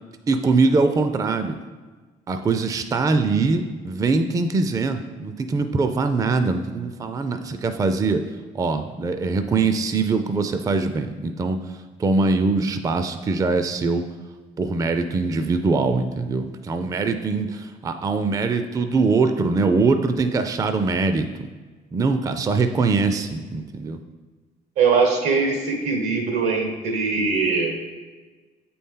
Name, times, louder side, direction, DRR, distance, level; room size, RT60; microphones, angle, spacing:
voice 1, 0.3-1.6 2.3-8.2 8.5-11.6 12.0-14.0 14.6-21.5 21.9-24.0, right 3 dB, 20° right, 8 dB, 0.4 m, -22 dB
voice 2, 24.8-27.9, right 4 dB, 90° right, 3 dB, 1.3 m, -21 dB
8.2 x 4.2 x 3.7 m, 1.3 s
cardioid pair, 110°, 17 cm